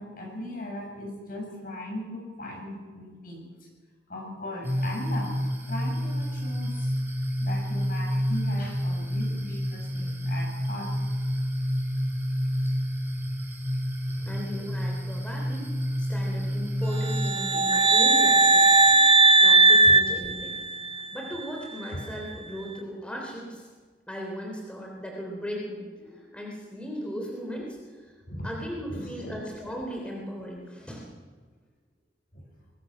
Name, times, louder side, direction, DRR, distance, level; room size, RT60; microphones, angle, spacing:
voice 1, 0.0-3.5 4.1-5.3 5.7-6.9 7.4-10.9 13.2-13.3 14.2-14.3 19.8-19.9 28.3-28.5 28.9-29.3 32.3-32.4, left 1 dB, 50° left, -1 dB, 7.4 m, -38 dB
sound 1, 4.6-17.3, equal, 10° right, 4.9 m, -29 dB
voice 2, 14.2-19.1 19.4-20.6 21.1-23.7 24.1-28.0 28.4-31.1, equal, 5° left, -1 dB, 3.4 m, -37 dB
sound 2, 17.0-21.0, right 3 dB, 30° right, 0.9 m, -18 dB
22.5 x 20.0 x 6.3 m, 1.4 s
head